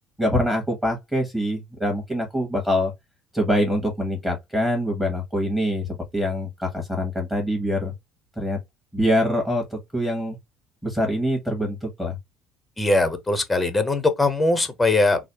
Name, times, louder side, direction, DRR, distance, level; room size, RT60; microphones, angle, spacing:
voice 1, 0.2-2.9 3.3-7.9 8.4-8.6 8.9-10.4 10.8-12.2, equal, 5° right, 1.3 m, -24 dB
voice 2, 12.8-15.3, left 2 dB, 15° left, 0.8 m, -21 dB
3.1 x 2.0 x 2.9 m
hypercardioid pair, 65°, 0 cm